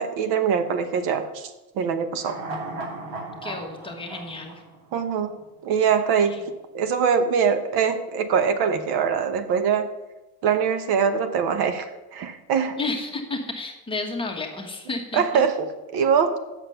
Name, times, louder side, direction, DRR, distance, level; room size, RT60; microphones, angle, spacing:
voice 1, 0.0-1.5 1.7-2.4 4.9-5.3 5.6-6.4 6.7-9.9 10.4-12.8 15.1-16.4, right 6 dB, 60° right, 9 dB, 1.0 m, -23 dB
sound 1, 2.1-5.5 5.8-5.9, right 2 dB, 90° right, 2.3 m, -36 dB
voice 2, 3.4-4.6 6.3-6.4 12.8-15.4, left 3 dB, 10° left, 1 dB, 1.3 m, -32 dB
7.8 x 6.7 x 6.7 m, 1.1 s
cardioid pair, 140°, 42 cm